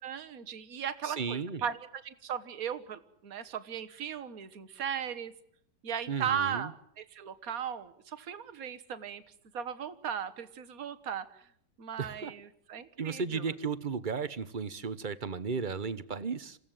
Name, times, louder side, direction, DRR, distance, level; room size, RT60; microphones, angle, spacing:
voice 1, 0.0-5.3 5.8-9.2 9.5-11.4 11.8-13.5, right 8 dB, 55° right, 11 dB, 1.7 m, -37 dB
voice 2, 1.0-1.6 6.1-6.7 12.0-12.3 13.0-16.6, right 5 dB, 35° right, 14 dB, 1.0 m, -34 dB
27.5 x 16.5 x 9.1 m, 0.70 s
omnidirectional pair, 1.9 m